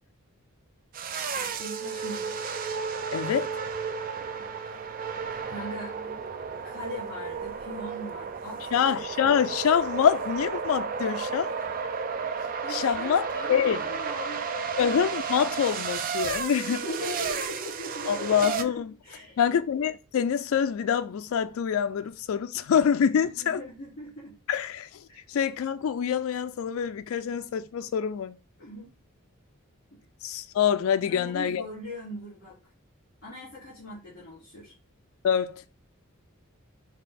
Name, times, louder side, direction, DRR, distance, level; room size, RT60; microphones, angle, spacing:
sound 1, 0.9-18.6, right 6 dB, 40° right, 0.4 m, -33 dB
voice 1, 1.3-2.4 5.5-5.9 6.6-9.0 12.6-14.8 16.7-18.7 19.0-19.6 23.1-24.4 25.1-25.3 28.6-28.9 29.9-30.0 31.0-32.6 33.2-34.7, left 1 dB, 40° left, 2.3 m, -40 dB
voice 2, 3.1-3.5 8.7-11.5 12.7-13.8 14.8-16.8 18.1-18.9 19.4-23.6 24.5-25.0 25.3-28.4 30.2-31.6 35.2-35.6, left 8 dB, 65° left, 0.3 m, -26 dB
5.8 x 2.4 x 3.3 m
head